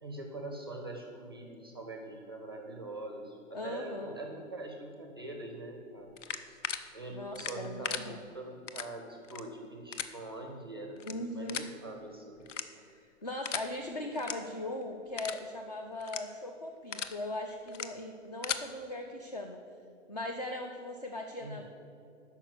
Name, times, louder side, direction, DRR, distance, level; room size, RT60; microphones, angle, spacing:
voice 1, 0.0-6.1 6.9-11.0 11.3-12.4 21.4-21.6, right 2 dB, 20° right, 3 dB, 0.5 m, -43 dB
voice 2, 3.5-4.1 7.1-8.2 11.0-11.7 12.6-19.6 20.1-21.6, left 1 dB, 35° left, 4 dB, 0.4 m, -39 dB
sound 1, 6.2-6.8 7.3-8.0 8.7-8.9 9.2-9.4 9.9-10.1 11.0-11.1 11.5-11.7 12.5-12.9 13.4-13.7 14.1-14.3 14.7-14.8 15.2-15.4 16.0-16.2 16.7-17.1 17.7-17.9 18.2-18.6, left 7 dB, 70° left, 0.8 m, -36 dB
9.0 x 5.8 x 7.8 m, 2.6 s
hypercardioid pair, 175°, 38 cm